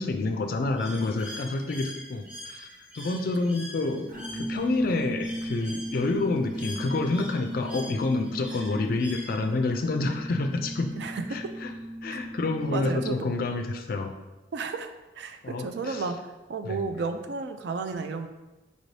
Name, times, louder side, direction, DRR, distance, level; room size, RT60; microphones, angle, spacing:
voice 1, 0.0-2.7 2.9-10.9 11.3-11.7 12.0-14.1 15.4-16.0 16.6-16.8, left 3 dB, 50° left, 6 dB, 0.4 m, -28 dB
Bird, 0.8-9.7, left 1 dB, 5° right, 0.6 m, -44 dB
sound 1, 4.1-13.3, equal, 40° right, 0.8 m, -36 dB
voice 2, 11.0-11.4 12.1-12.2 12.7-13.3 14.5-14.9 15.2-16.2 16.5-18.3, right 4 dB, 65° right, 7 dB, 0.4 m, -32 dB
5.1 x 2.6 x 3.2 m, 1.1 s
head